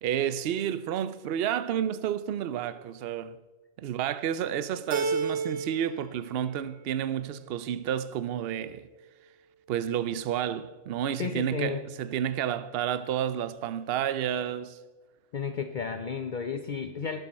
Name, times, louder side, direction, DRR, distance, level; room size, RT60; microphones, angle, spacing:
voice 1, 0.0-3.4 3.8-8.8 9.7-14.8, right 10 dB, 65° right, 0.6 m, -30 dB
Keyboard (musical), 4.9-6.0 6.3-7.1, right 4 dB, 45° right, 1.1 m, -31 dB
voice 2, 11.2-11.8 15.3-17.2, left 6 dB, 75° left, 0.4 m, -32 dB
20.0 x 6.8 x 4.2 m
omnidirectional pair, 1.6 m